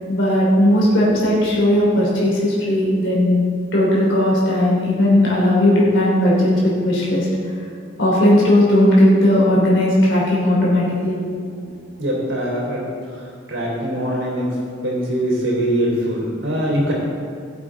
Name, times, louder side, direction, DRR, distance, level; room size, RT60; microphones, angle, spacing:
voice 1, 0.1-3.4 3.7-7.3 8.0-11.2, left 1 dB, 80° left, -6 dB, 3.1 m, -16 dB
voice 2, 12.0-12.8 13.1-13.2 13.5-14.5 14.8-16.9, right 1 dB, 85° right, -5 dB, 3.3 m, -22 dB
17.0 x 8.0 x 3.8 m, 2.3 s
head